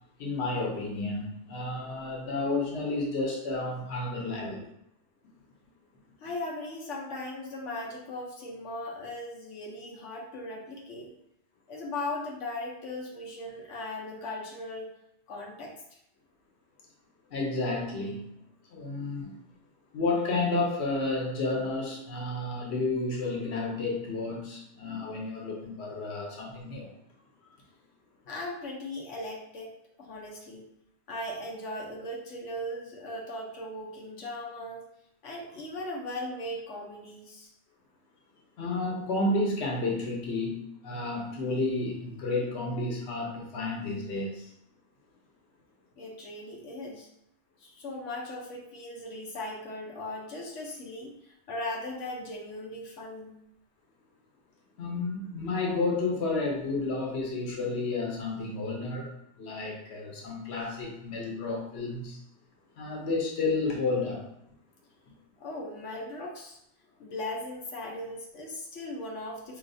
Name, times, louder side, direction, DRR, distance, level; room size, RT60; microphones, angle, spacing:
voice 1, 0.2-4.6 17.3-18.3 18.7-19.4 19.9-26.9 38.6-44.5 54.8-59.1 59.4-62.2 62.8-64.2, left 3 dB, 65° left, -1 dB, 1.1 m, -31 dB
voice 2, 6.2-11.1 11.7-14.9 15.3-16.0 28.3-30.6 31.1-34.8 35.2-37.5 46.0-47.1 47.6-53.4 65.4-66.6 67.0-69.6, left 1 dB, 90° left, -2 dB, 1.1 m, -38 dB
4.8 x 2.8 x 2.6 m, 0.75 s
omnidirectional pair, 1.2 m